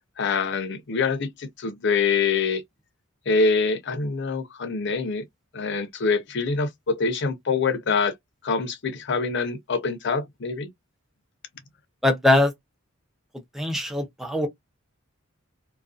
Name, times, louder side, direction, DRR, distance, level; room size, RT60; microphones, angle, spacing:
voice 1, 0.2-2.6 3.3-5.2 5.5-8.1 8.4-10.7, left 4 dB, 55° left, 0.6 m, -25 dB
voice 2, 12.0-12.5 13.6-14.5, left 1 dB, ahead, 0.5 m, -21 dB
2.5 x 2.3 x 2.3 m
head